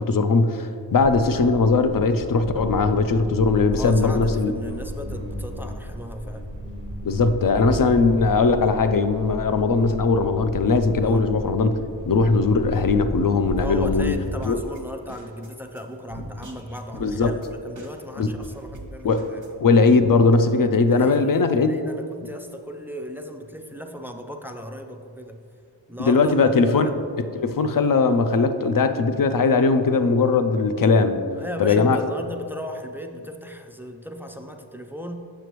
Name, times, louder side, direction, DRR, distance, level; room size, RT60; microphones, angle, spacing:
voice 1, 0.0-4.5 7.0-11.8 12.1-14.2 14.5-14.6 17.0-17.3 18.2-18.3 19.0-19.2 19.6-21.8 26.0-26.9 27.2-31.2 31.6-32.0, left 4 dB, 50° left, 9 dB, 0.5 m, -19 dB
sound 1, 1.0-14.1, equal, 85° left, 1.6 m, -33 dB
voice 2, 3.7-6.5 11.0-11.3 13.6-17.4 17.6-19.5 20.9-25.4 25.9-26.9 31.4-35.2, left 1 dB, 5° right, 4 dB, 0.4 m, -36 dB
sound 2, 14.2-19.5, right 2 dB, 40° right, 1.0 m, -42 dB
6.9 x 6.7 x 3.0 m, 2.3 s
wide cardioid pair, 55°, 46 cm